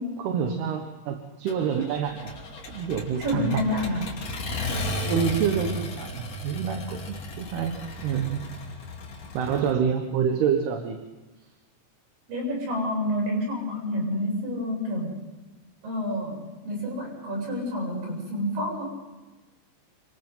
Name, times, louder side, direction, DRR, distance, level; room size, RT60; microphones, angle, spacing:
voice 1, 0.2-2.3 2.7-3.6 4.7-8.4 9.3-11.0, right 7 dB, 70° right, 4 dB, 3.3 m, -27 dB
Accelerating revving vroom, 1.5-9.7, left 1 dB, 40° left, 3.6 m, -35 dB
voice 2, 3.2-4.0 12.3-15.2 15.8-18.9, left 1 dB, 55° right, -1 dB, 9.3 m, -29 dB
28.0 x 26.5 x 3.9 m, 1.2 s
omnidirectional pair, 5.0 m